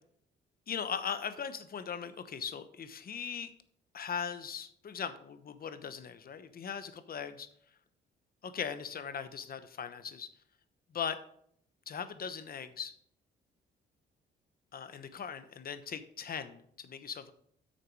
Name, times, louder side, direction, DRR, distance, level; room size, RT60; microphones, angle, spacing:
voice 1, 0.7-3.5 3.9-7.5 8.4-10.3 10.9-11.2 11.9-12.9 14.7-17.3, left 7 dB, 50° left, 11 dB, 1.0 m, -39 dB
9.6 x 6.5 x 4.7 m, 0.65 s
cardioid pair, 90°, 20 cm